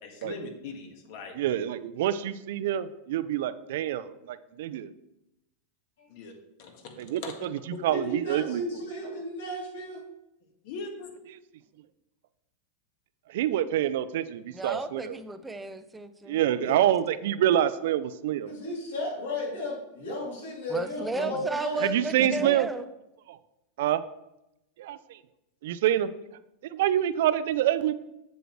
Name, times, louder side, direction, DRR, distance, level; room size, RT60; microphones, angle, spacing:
voice 1, 0.0-1.3 6.1-6.9 7.2-7.3 10.6-11.1 16.5-16.7, left 4 dB, 55° left, 3 dB, 1.7 m, -40 dB
voice 2, 1.4-4.9 7.0-7.2 7.8-8.6 13.3-15.2 16.3-18.5 21.8-22.7 23.3-23.4 23.8-24.0 24.8-25.0 25.6-26.1 26.7-27.9, right 11 dB, 70° right, 13 dB, 0.5 m, -26 dB
voice 3, 7.9-10.0 18.4-21.8 22.2-22.4, left 1 dB, 90° left, -1 dB, 2.9 m, -34 dB
voice 4, 14.5-16.4 20.7-22.9, right 3 dB, 10° right, 10 dB, 0.5 m, -33 dB
7.9 x 7.7 x 3.2 m, 0.88 s
supercardioid pair, 145°, 0 cm